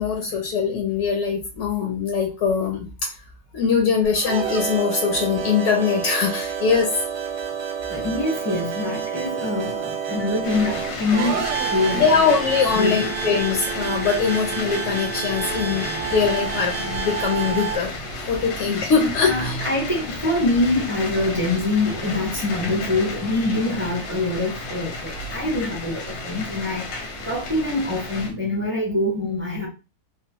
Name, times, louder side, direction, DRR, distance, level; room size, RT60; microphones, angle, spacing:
voice 1, 0.0-3.1 3.5-6.9 11.9-17.9 18.3-19.6, left 6 dB, 65° left, 2 dB, 0.8 m, -22 dB
sound 1, 4.1-17.8, right 7 dB, 70° right, 0.7 m, -29 dB
voice 2, 7.9-11.4 11.7-12.1 12.8-13.1 19.2-29.7, left 2 dB, 10° right, -3 dB, 0.7 m, -24 dB
sound 2, 10.4-28.3, left 2 dB, 85° left, 1.3 m, -32 dB
2.9 x 2.0 x 2.9 m, 0.30 s
omnidirectional pair, 1.7 m